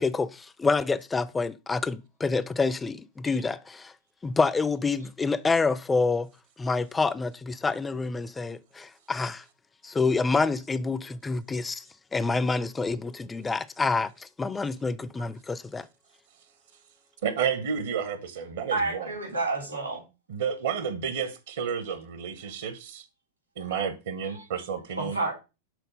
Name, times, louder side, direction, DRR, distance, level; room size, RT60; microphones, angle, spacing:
voice 1, 0.0-3.9 4.2-6.3 6.6-9.4 9.8-11.8 12.1-15.9, left 4 dB, 15° left, 0.4 m, -27 dB
voice 2, 17.2-19.1 20.3-23.0 23.6-25.2, right 7 dB, 60° right, 1.0 m, -31 dB
voice 3, 18.7-20.0 23.6-23.7 24.3-24.4 25.0-25.3, right 3 dB, 85° right, 3.6 m, -30 dB
6.3 x 4.0 x 5.1 m
figure-of-eight pair, 90°, 0 cm